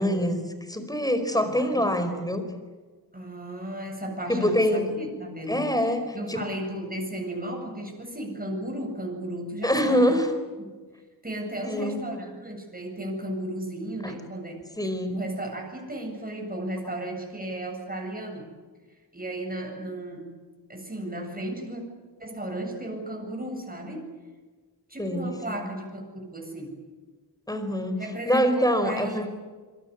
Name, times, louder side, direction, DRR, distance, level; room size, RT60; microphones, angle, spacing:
voice 1, 0.0-2.4 4.3-4.8 5.5-6.4 9.6-10.3 11.6-12.0 14.0-14.1 14.8-15.1 25.0-25.6 27.5-28.0 28.2-29.3, equal, 10° left, 8 dB, 5.0 m, -25 dB
voice 2, 1.3-1.9 3.1-10.2 10.6-10.7 11.2-14.7 15.1-18.5 19.1-20.4 20.7-21.8 22.2-24.0 24.9-26.8 28.0-28.4 28.8-29.3, right 1 dB, 25° right, 1 dB, 7.9 m, -35 dB
27.0 x 23.5 x 8.4 m, 1.4 s
wide cardioid pair, 85°, 39 cm